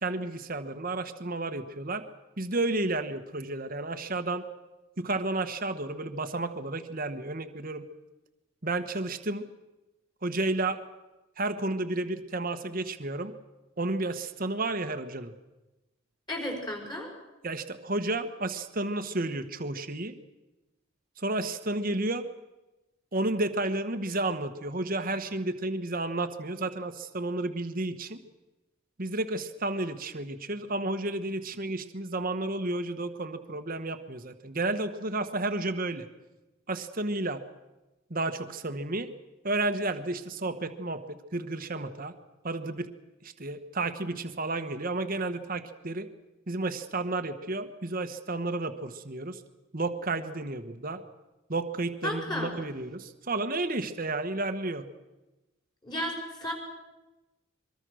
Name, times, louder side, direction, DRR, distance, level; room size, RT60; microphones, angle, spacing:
voice 1, 0.0-2.0 2.4-4.4 5.0-7.9 8.6-9.5 10.2-10.8 11.4-13.3 13.8-15.3 17.4-20.1 21.2-22.3 23.1-28.2 29.0-36.0 36.7-37.4 38.1-39.1 39.4-42.1 42.4-42.9 43.2-46.1 46.5-49.4 49.7-51.0 51.5-54.9, right 2 dB, 45° right, 8 dB, 1.3 m, -32 dB
voice 2, 16.3-17.1 52.0-52.5 55.8-56.5, left 1 dB, 20° left, 1 dB, 5.5 m, -33 dB
24.0 x 23.0 x 6.4 m, 1.1 s
head